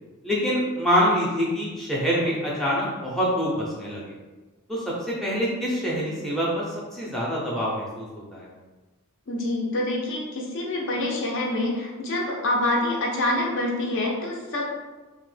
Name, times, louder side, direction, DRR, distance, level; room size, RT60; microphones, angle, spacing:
voice 1, 0.2-4.1 4.7-8.5, equal, ahead, -6 dB, 0.4 m, -25 dB
voice 2, 9.3-14.6, left 1 dB, 55° left, -1 dB, 0.5 m, -26 dB
2.8 x 2.1 x 3.2 m, 1.2 s
head